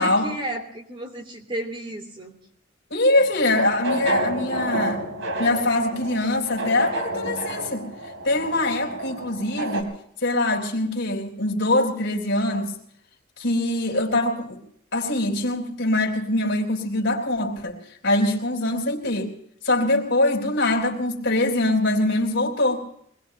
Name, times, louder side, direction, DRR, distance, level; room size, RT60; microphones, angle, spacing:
voice 1, 0.0-2.4, right 1 dB, 25° right, 3 dB, 3.2 m, -33 dB
voice 2, 2.9-5.0 5.4-7.9 8.2-9.9 10.2-12.7 13.4-14.6 14.9-17.8 18.0-19.3 19.6-22.9, left 2 dB, 65° left, 1 dB, 3.8 m, -23 dB
sound 1, 3.2-9.8, right 1 dB, 80° right, 3.3 m, -30 dB
24.0 x 20.5 x 2.9 m, 0.68 s
head